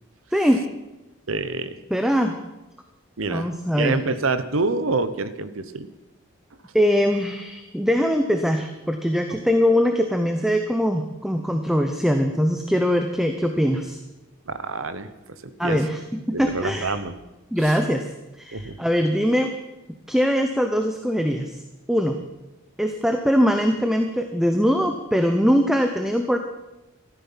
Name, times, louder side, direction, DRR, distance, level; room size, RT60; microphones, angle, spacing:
voice 1, 0.3-0.6 1.9-2.4 3.3-4.0 6.7-14.0 15.6-16.0 16.3-16.9 17.5-18.1 18.4-19.5 20.1-21.6 21.9-22.2 22.8-26.4, equal, ahead, 5 dB, 0.8 m, -22 dB
voice 2, 1.3-1.8 3.2-3.5 3.8-5.9 14.5-15.1 15.6-15.8 16.3-17.2 17.6-17.8 18.5-18.8, right 3 dB, 75° right, 12 dB, 1.0 m, -26 dB
15.0 x 12.5 x 5.8 m, 1.0 s
head